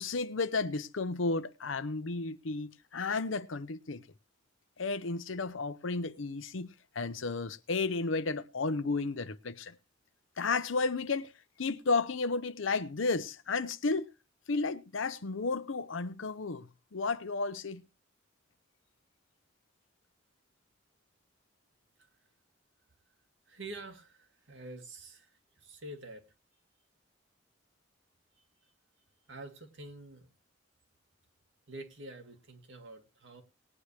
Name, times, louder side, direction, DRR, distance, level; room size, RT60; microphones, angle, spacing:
voice 1, 0.0-4.0 4.8-9.8 10.4-11.3 11.6-14.1 14.5-17.8, left 3 dB, 80° left, 0.7 m, -33 dB
voice 2, 23.5-26.2 29.3-30.3 31.7-33.4, right 2 dB, 70° right, 2.2 m, -47 dB
19.5 x 9.9 x 3.2 m
head